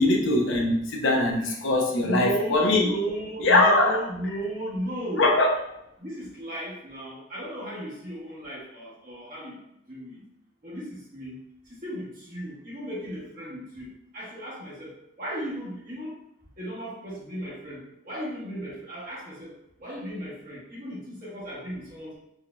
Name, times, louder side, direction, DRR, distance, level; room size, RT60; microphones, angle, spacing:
voice 1, 0.0-2.9 3.4-4.0 5.2-5.5, left 2 dB, 70° left, 0 dB, 0.7 m, -21 dB
voice 2, 2.0-5.3 6.0-9.6 9.9-10.2 10.6-11.4 11.8-16.2 16.6-19.5 19.8-22.1, right 1 dB, 45° right, -6 dB, 1.3 m, -35 dB
4.7 x 2.7 x 2.3 m, 0.80 s
head